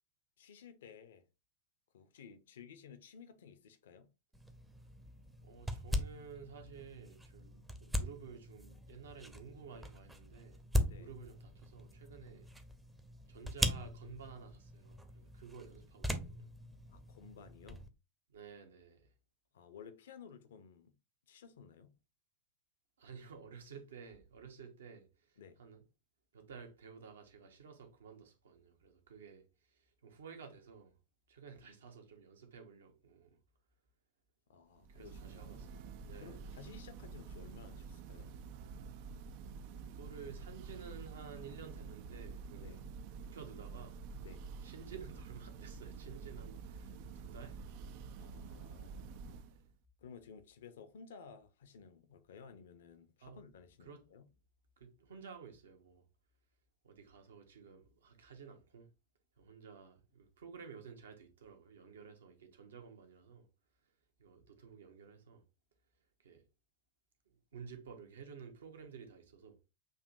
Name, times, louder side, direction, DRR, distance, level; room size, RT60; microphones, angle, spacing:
voice 1, 0.4-1.2 1.9-4.1 10.8-11.1 16.9-17.9 19.5-21.0 21.3-21.9 25.4-25.6 34.5-35.8 36.2-38.4 42.5-42.9 44.2-44.4 48.1-49.1 50.0-54.3, left 6 dB, 60° left, 0.7 m, -55 dB
sound 1, 4.3-17.9, equal, 5° right, 0.7 m, -41 dB
voice 2, 5.4-10.6 10.9-12.5 13.3-16.5 18.3-19.1 23.0-25.8 26.3-31.0 31.3-33.4 34.9-36.6 39.8-42.7 43.1-44.0 44.6-48.0 49.5-49.6 53.2-53.4 53.8-54.0 54.8-56.0 56.8-58.9 59.4-63.5 64.2-65.4 66.2-66.4 67.5-69.6, right 6 dB, 65° right, 1.1 m, -53 dB
Church bell, 34.8-49.7, right 5 dB, 45° right, 0.4 m, -48 dB
6.5 x 2.9 x 2.6 m
figure-of-eight pair, 90°, 0 cm